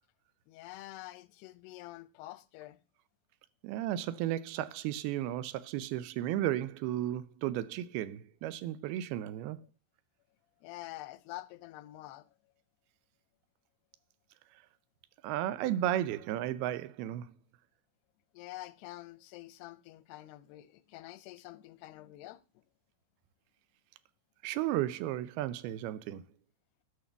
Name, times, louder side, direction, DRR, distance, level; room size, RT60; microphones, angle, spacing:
voice 1, 0.5-2.8 10.6-12.3 18.3-22.6, left 16 dB, 90° left, 2.8 m, -47 dB
voice 2, 3.6-9.6 15.2-17.3 24.4-26.3, right 13 dB, 80° right, 2.5 m, -34 dB
11.5 x 5.1 x 6.9 m
omnidirectional pair, 4.6 m